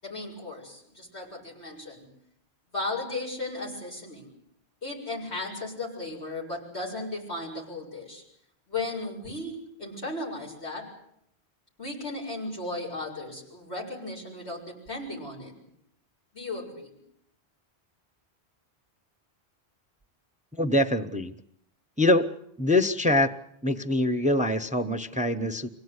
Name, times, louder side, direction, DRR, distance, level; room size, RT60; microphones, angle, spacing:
voice 1, 0.0-2.1 2.7-4.3 4.8-8.2 8.7-10.9 11.8-15.5 16.3-16.9, left 2 dB, 85° left, -2 dB, 7.5 m, -35 dB
voice 2, 20.5-21.3 22.0-22.3 22.6-23.3 23.6-25.7, left 1 dB, 5° right, 10 dB, 0.9 m, -24 dB
25.5 x 17.5 x 9.7 m, 0.72 s
omnidirectional pair, 1.1 m